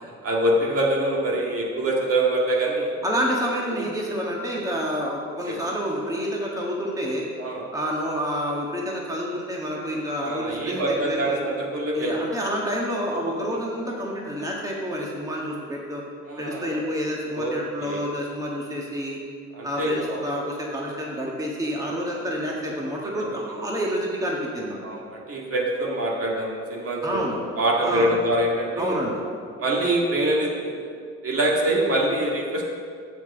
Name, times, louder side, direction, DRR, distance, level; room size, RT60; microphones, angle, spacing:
voice 1, 0.2-2.9 3.7-3.9 5.5-5.6 7.4-7.7 10.2-12.1 13.5-13.6 16.3-16.8 17.3-17.5 17.8-18.0 19.6-20.3 23.1-23.4 24.8-27.2 27.6-29.0 29.6-30.9 31.2-32.6, right 1 dB, 50° right, -3 dB, 1.9 m, -25 dB
voice 2, 3.0-7.2 7.7-11.4 11.9-16.0 16.4-19.2 19.6-24.9 27.0-27.4 27.8-28.1 28.8-29.2, equal, 10° right, -3 dB, 1.5 m, -28 dB
7.2 x 5.9 x 6.9 m, 2.2 s
cardioid pair, 90°, 30 cm